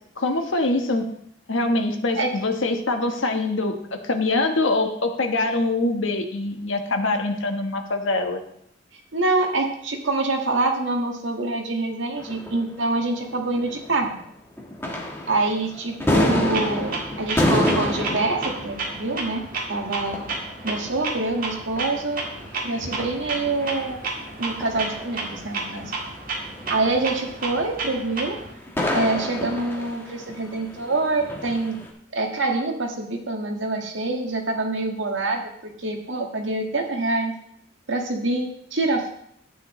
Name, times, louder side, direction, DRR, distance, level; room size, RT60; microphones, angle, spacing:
voice 1, 0.2-1.0 1.5-3.7 4.0-8.4, left 2 dB, 85° left, 4 dB, 1.3 m, -24 dB
voice 2, 9.1-14.2 15.3-19.4 19.7-20.3 20.6-22.3 22.6-24.0 24.4-25.9 26.7-28.4 28.9-31.8 32.1-35.5 35.8-37.3 37.9-39.1, right 2 dB, 80° right, 2 dB, 1.7 m, -25 dB
sound 1, 12.2-14.3 14.6-31.9, left 1 dB, 10° left, 1.4 m, -30 dB
Clock, 16.5-28.5, right 3 dB, 45° right, 1.8 m, -32 dB
11.5 x 9.2 x 3.2 m, 0.69 s
head